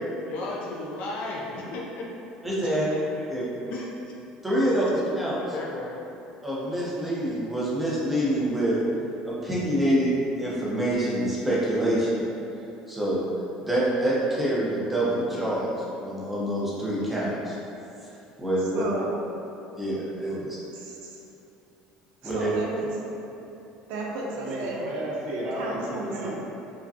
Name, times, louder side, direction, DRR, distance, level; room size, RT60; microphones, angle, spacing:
voice 1, 0.3-2.1 3.1-3.3 3.7-3.9 4.5-4.7 5.3-5.9, left 2 dB, 60° left, -3 dB, 0.5 m, -35 dB
voice 2, 2.4-2.9 3.3-3.4 4.4-5.4 6.4-8.8 9.2-12.2 12.9-13.2 13.6-17.6 18.4-18.8 19.7-20.6 22.2-22.5, right 1 dB, 5° right, -8 dB, 0.8 m, -26 dB
voice 3, 18.7-19.2 20.3-20.4 20.7-21.2 22.2-22.9 23.9-24.8 25.6-26.4, right 2 dB, 80° right, -3 dB, 0.7 m, -33 dB
voice 4, 24.3-26.4, right 1 dB, 45° right, -4 dB, 0.7 m, -33 dB
4.8 x 2.2 x 2.7 m, 2.8 s
cardioid pair, 155°, 2 cm